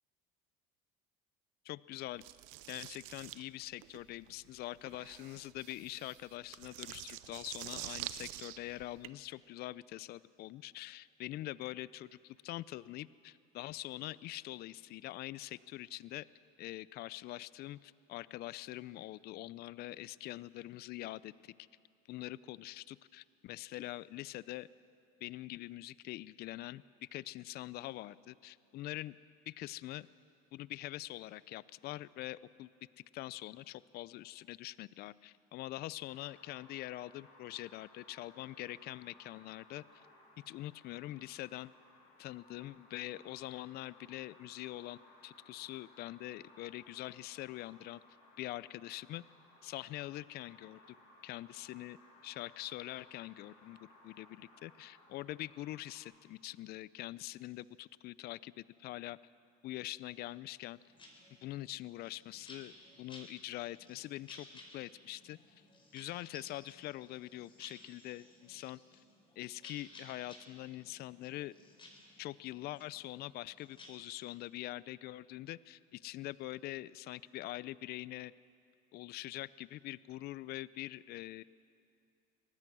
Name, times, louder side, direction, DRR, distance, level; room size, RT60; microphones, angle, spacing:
voice 1, 1.6-2.2 2.7-16.3 16.6-21.5 22.1-24.7 25.2-29.1 29.5-30.1 30.5-32.7 33.1-39.8 40.5-41.7 42.2-48.0 48.4-49.2 49.6-51.0 51.2-52.0 52.2-53.8 54.0-59.2 59.6-60.8 61.4-64.5 64.7-65.4 65.9-68.8 69.4-71.5 72.2-78.3 78.9-81.4, left 16 dB, 55° left, 19 dB, 0.5 m, -44 dB
sound 1, 2.2-9.1, right 17 dB, 80° right, 0.7 m, -47 dB
sound 2, 36.0-56.0, left 2 dB, 80° left, 6.5 m, -62 dB
sound 3, 60.9-73.9, left 2 dB, 25° left, 5.4 m, -57 dB
24.5 x 18.0 x 6.2 m, 2.4 s
supercardioid pair, 105°, 20 cm